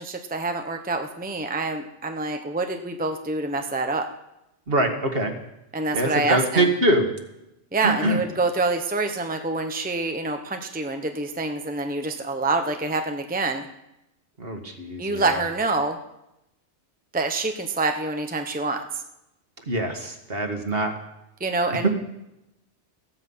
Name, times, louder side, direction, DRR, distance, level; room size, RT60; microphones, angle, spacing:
voice 1, 0.0-4.1 5.7-6.7 7.7-13.7 15.0-16.0 17.1-19.0 21.4-21.9, right 3 dB, 10° right, 5 dB, 0.9 m, -26 dB
voice 2, 4.7-5.3 5.9-7.0 7.8-8.2 14.4-15.2 19.7-20.9 21.8-21.9, right 1 dB, 55° right, 4 dB, 2.1 m, -23 dB
15.5 x 15.0 x 5.7 m, 0.88 s
omnidirectional pair, 1.2 m